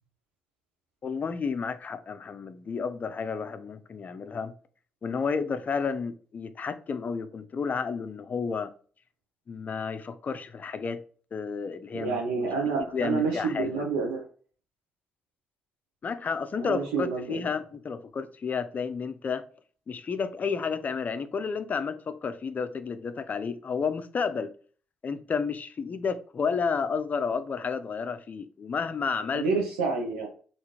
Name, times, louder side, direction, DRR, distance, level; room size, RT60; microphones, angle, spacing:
voice 1, 1.0-4.5 5.0-8.7 9.5-11.0 11.3-12.5 12.9-13.8 16.0-19.4 19.9-24.5 25.0-29.5, left 5 dB, 45° left, 0.4 m, -31 dB
voice 2, 11.9-14.2 16.5-17.5 29.3-30.3, right 4 dB, 85° right, 0.6 m, -28 dB
3.5 x 2.5 x 2.9 m
hypercardioid pair, 45°, 4 cm